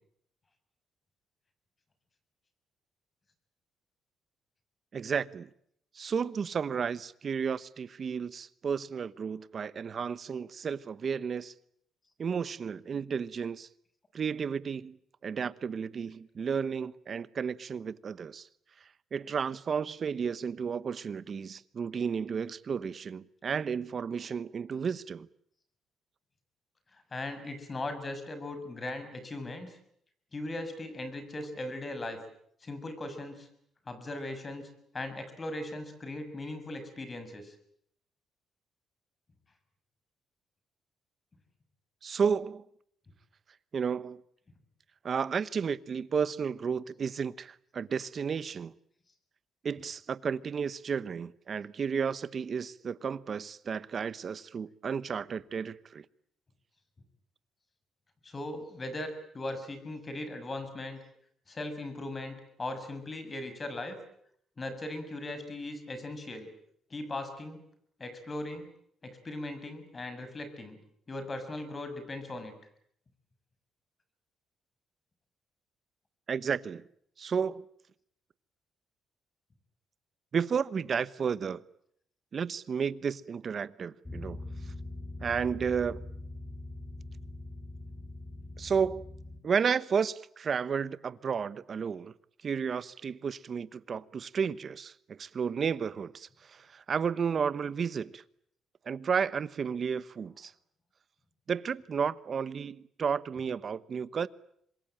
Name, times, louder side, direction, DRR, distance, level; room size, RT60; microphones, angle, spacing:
voice 1, 4.9-5.5 5.9-11.5 12.2-13.7 14.1-15.0 15.2-18.5 19.1-25.3 42.0-42.6 43.7-44.2 45.0-48.7 49.6-56.0 76.3-76.9 77.2-77.6 80.3-81.6 82.3-84.4 85.2-86.0 88.6-89.0 89.4-92.1 92.4-98.2 98.8-100.5 101.5-104.3, right 6 dB, 50° right, 1.0 m, -32 dB
voice 2, 26.9-29.8 30.3-32.2 32.6-33.5 33.9-37.5 58.2-61.0 61.5-64.0 64.6-66.5 66.9-67.6 68.0-68.7 69.0-70.8 71.1-72.5, left 2 dB, 30° left, 6.2 m, -39 dB
sound 1, 84.0-89.4, left 2 dB, 15° left, 3.7 m, -42 dB
26.0 x 22.0 x 8.9 m
cardioid pair, 90°, 0 cm